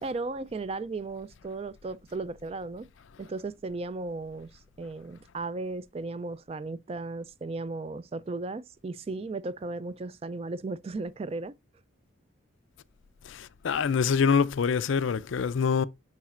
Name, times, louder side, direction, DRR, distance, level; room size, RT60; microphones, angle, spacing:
voice 1, 0.0-2.9 3.2-11.5, right 3 dB, 30° right, 0.3 m, -35 dB
voice 2, 13.6-15.9, left 6 dB, 75° left, 0.4 m, -24 dB
7.2 x 5.6 x 2.4 m
head